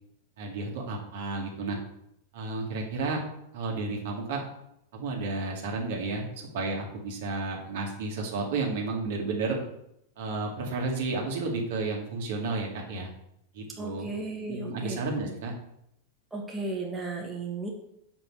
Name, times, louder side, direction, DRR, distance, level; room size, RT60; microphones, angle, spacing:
voice 1, 0.4-1.8 2.3-3.2 3.5-4.4 4.9-9.6 10.2-13.1 13.5-14.1 14.5-15.5, right 3 dB, 55° right, -1 dB, 2.0 m, -32 dB
voice 2, 13.8-15.0 16.3-17.7, right 3 dB, 10° right, -2 dB, 1.7 m, -35 dB
7.2 x 5.2 x 4.9 m, 0.77 s
figure-of-eight pair, 90°, 0 cm